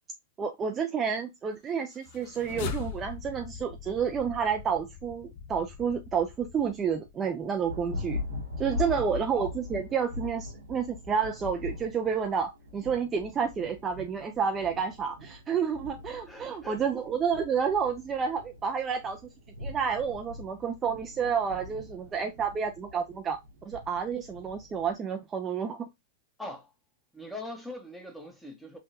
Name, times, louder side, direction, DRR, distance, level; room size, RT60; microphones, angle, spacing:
voice 1, 0.4-8.2 8.6-19.2 19.6-23.4 23.7-25.9, right 6 dB, 25° right, 0.4 m, -30 dB
sound 1, 2.0-7.3, left 6 dB, 55° left, 0.5 m, -41 dB
Thunder, 7.4-24.9, left 3 dB, 90° right, 0.9 m, -41 dB
voice 2, 8.7-9.0 16.3-16.8 22.2-22.4 26.4-26.7 27.1-28.8, left 1 dB, 5° left, 1.0 m, -42 dB
3.6 x 2.3 x 2.6 m
hypercardioid pair, 115°, 0 cm